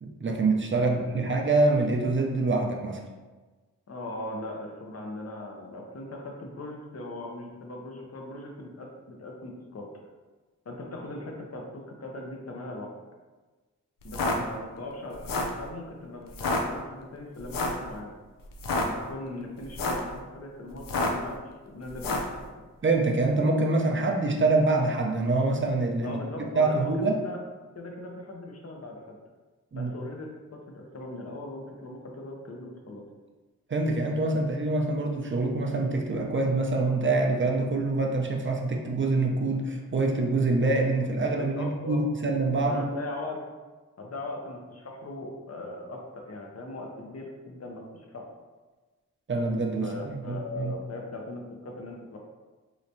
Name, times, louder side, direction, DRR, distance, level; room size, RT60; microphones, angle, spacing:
voice 1, 0.0-3.0 22.8-26.2 26.5-27.2 29.7-29.9 33.7-42.8 49.3-50.7, right 3 dB, 40° right, 1 dB, 0.5 m, -25 dB
voice 2, 0.7-1.2 3.9-9.9 10.7-12.9 14.0-18.1 18.8-21.4 21.7-22.7 26.0-27.4 27.7-29.2 29.7-33.0 34.4-34.5 41.4-42.0 42.7-43.4 44.0-48.3 49.8-52.2, left 2 dB, 50° left, 0 dB, 0.7 m, -39 dB
sound 1, 14.0-14.4 15.1-15.6 16.3-16.6 17.5-17.8 18.5-18.9 19.6-20.1 20.8-21.3 22.0-22.3, left 2 dB, 90° left, 0.5 m, -28 dB
3.2 x 3.0 x 2.6 m, 1.3 s
cardioid pair, 55°, 32 cm